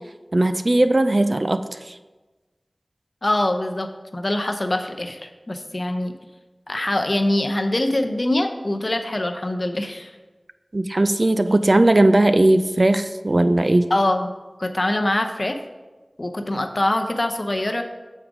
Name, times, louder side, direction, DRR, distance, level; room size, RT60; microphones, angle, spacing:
voice 1, 0.3-1.6 1.9-2.0 10.7-13.9, right 1 dB, 50° right, 10 dB, 0.3 m, -18 dB
voice 2, 3.2-3.9 4.1-6.1 6.7-10.1 13.9-14.3 14.6-15.6 16.2-17.8, left 1 dB, 45° left, 6 dB, 0.6 m, -23 dB
6.4 x 5.1 x 4.8 m, 1.2 s
wide cardioid pair, 55°, 0 cm